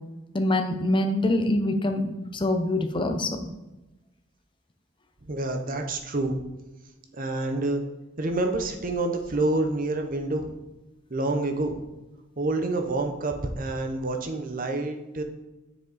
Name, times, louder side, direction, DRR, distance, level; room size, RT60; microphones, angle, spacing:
voice 1, 0.3-3.4, left 1 dB, 25° left, 6 dB, 0.6 m, -25 dB
voice 2, 5.3-6.4 7.1-7.8 8.2-10.6 11.1-11.8 12.4-15.2, right 2 dB, 40° right, 5 dB, 0.8 m, -28 dB
7.2 x 5.0 x 4.0 m, 1.0 s
head